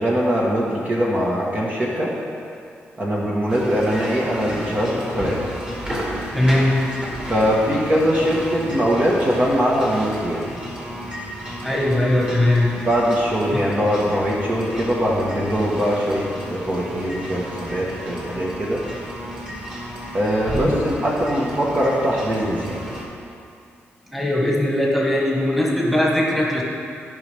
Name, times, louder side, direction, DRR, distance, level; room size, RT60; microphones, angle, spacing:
voice 1, 0.0-2.1 3.0-5.4 7.3-10.4 12.9-18.8 20.1-22.8, equal, 35° right, -4 dB, 1.4 m, -21 dB
sound 1, 3.5-23.0, equal, 20° right, 2.2 m, -33 dB
voice 2, 6.3-6.8 11.6-12.7 13.5-13.6 20.5-20.8 24.1-26.6, left 1 dB, ahead, -4 dB, 1.8 m, -19 dB
14.5 x 5.5 x 3.5 m, 2.4 s
cardioid pair, 90°, 4 cm